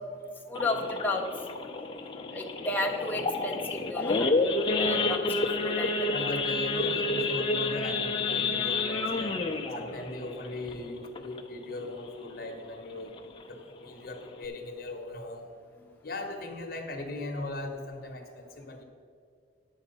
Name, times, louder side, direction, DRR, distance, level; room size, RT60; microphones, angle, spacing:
Idling / Accelerating revving vroom / Sawing, 0.5-11.6 12.0-12.2 12.5-12.6 13.1-13.3 13.8-13.9 14.1-14.4, left 3 dB, 25° left, 0.6 m, -29 dB
voice 1, 0.5-1.3 2.2-6.1, left 2 dB, 10° left, 0 dB, 0.9 m, -33 dB
voice 2, 6.1-9.4 9.7-13.1 13.5-15.5 16.0-18.8, left 2 dB, 55° left, 3 dB, 1.0 m, -38 dB
10.5 x 7.2 x 5.3 m, 2.3 s
head